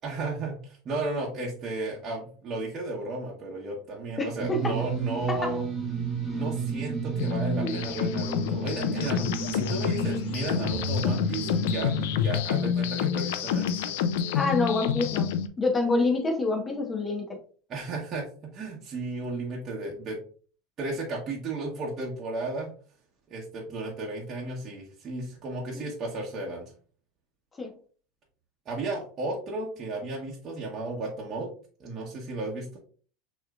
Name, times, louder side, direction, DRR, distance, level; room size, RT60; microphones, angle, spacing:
voice 1, 0.0-5.6 6.3-13.9 17.7-20.2 20.8-22.7 23.3-26.7 28.6-31.5 31.8-32.8, right 2 dB, 30° right, -4 dB, 1.2 m, -34 dB
voice 2, 4.2-4.8 5.3-5.5 7.6-7.7 14.3-15.3 15.6-17.4 25.7-25.9 27.6-27.7, left 3 dB, 15° left, 1 dB, 1.3 m, -27 dB
sound 1, 4.4-12.4, right 3 dB, 5° right, 1.8 m, -32 dB
sound 2, 7.2-15.5, left 8 dB, 80° left, 0.5 m, -28 dB
6.3 x 3.1 x 2.5 m, 0.41 s
supercardioid pair, 135°, 0 cm